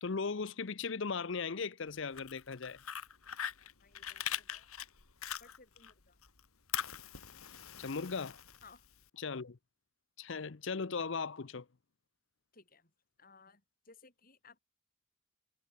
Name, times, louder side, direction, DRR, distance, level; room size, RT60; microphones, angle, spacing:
voice 1, 0.0-2.8 7.8-8.4 9.2-9.6 10.2-11.7, left 5 dB, 60° left, 0.7 m, -37 dB
Fire, 2.0-5.9 6.2-9.0, left 10 dB, 85° left, 2.2 m, -42 dB
voice 2, 3.8-4.7 5.4-6.2 8.6-8.9 12.5-12.9 13.2-14.6, left 4 dB, 40° left, 4.8 m, -60 dB
head